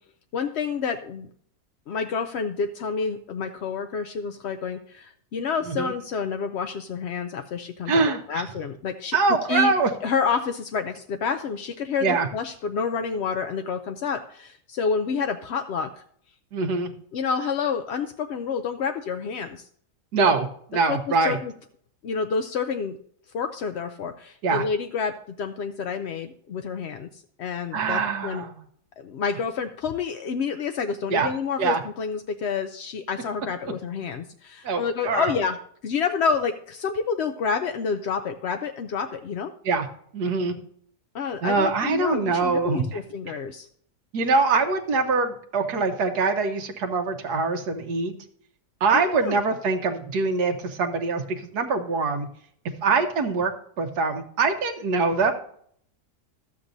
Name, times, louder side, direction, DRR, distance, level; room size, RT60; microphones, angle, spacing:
voice 1, 0.3-1.3 1.9-9.2 9.5-9.7 10.0-15.9 17.1-19.7 20.9-21.5 22.0-23.0 23.3-25.1 25.4-28.4 29.0-35.6 35.8-39.5 41.1-43.7 48.9-49.4, left 5 dB, 65° left, 7 dB, 0.6 m, -29 dB
voice 2, 7.9-8.4 9.1-9.9 12.0-12.3 16.5-16.9 20.1-21.4 24.4-24.6 27.7-28.5 31.1-31.3 31.6-31.8 34.6-35.3 39.6-39.9 40.1-40.5 41.4-43.0 44.1-48.1 48.8-52.3 52.8-53.5 53.8-55.3, right 4 dB, 80° right, 4 dB, 1.5 m, -23 dB
12.5 x 8.0 x 2.6 m, 0.62 s
omnidirectional pair, 1.7 m